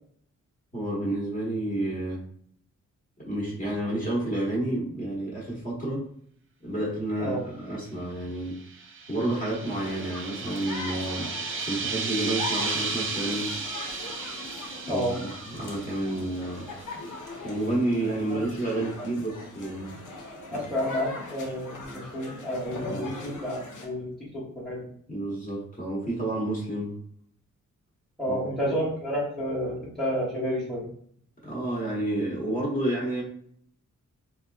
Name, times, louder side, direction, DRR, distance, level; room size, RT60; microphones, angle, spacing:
voice 1, 0.7-2.2 3.2-6.0 6.6-8.6 9.1-11.3 11.7-13.5 14.9-16.7 17.4-19.9 20.5-20.6 22.9-23.1 25.1-26.9 28.3-28.4 31.4-33.2, right 1 dB, 25° left, -6 dB, 1.1 m, -30 dB
sound 1, 8.5-16.8, right 4 dB, 40° right, 0.4 m, -34 dB
sound 2, 9.6-23.9, left 2 dB, 70° left, 0.8 m, -41 dB
voice 2, 20.5-24.8 28.2-30.8, equal, ahead, -7 dB, 1.0 m, -30 dB
3.9 x 2.3 x 2.3 m, 0.64 s
wide cardioid pair, 140°, 31 cm